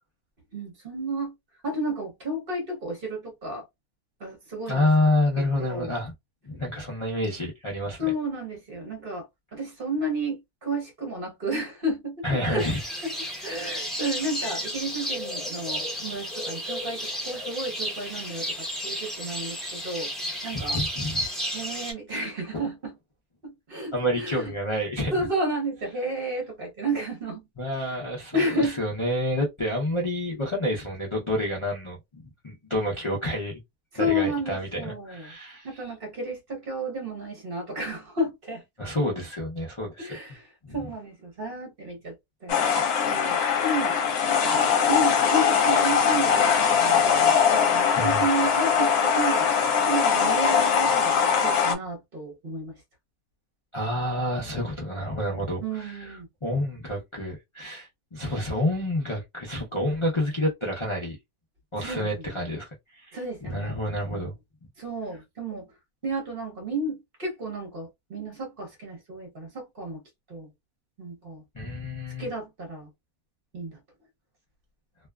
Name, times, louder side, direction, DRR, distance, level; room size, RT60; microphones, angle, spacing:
voice 1, 0.5-1.3 1.6-3.6 4.2-4.9 5.4-5.9 8.0-9.3 9.5-12.6 13.0-13.1 13.4-20.1 20.4-20.8 21.5-22.9 23.4-24.5 25.1-27.4 27.7-27.9 28.3-28.8 33.9-35.4 35.6-38.6 40.0-42.2 42.4-44.0 44.3-49.5 49.8-51.2 51.4-52.8 55.6-56.3 61.8-62.5 63.1-63.8 64.0-64.3 64.8-65.7 66.0-70.0 70.3-70.5 71.0-71.4 72.2-72.9 73.5-73.8, right 1 dB, 45° right, 1.0 m, -32 dB
voice 2, 4.7-6.1 6.4-8.0 12.2-12.8 20.5-21.3 22.5-22.6 23.9-25.3 27.6-33.6 34.0-35.7 38.8-40.1 40.6-40.8 47.9-48.2 53.7-56.2 56.4-61.2 61.7-64.3 71.5-72.3, left 1 dB, 45° left, 0.3 m, -28 dB
sound 1, 12.6-21.9, equal, ahead, 0.6 m, -32 dB
sound 2, 42.5-51.8, left 7 dB, 75° left, 1.1 m, -21 dB
2.6 x 2.3 x 2.2 m
omnidirectional pair, 1.6 m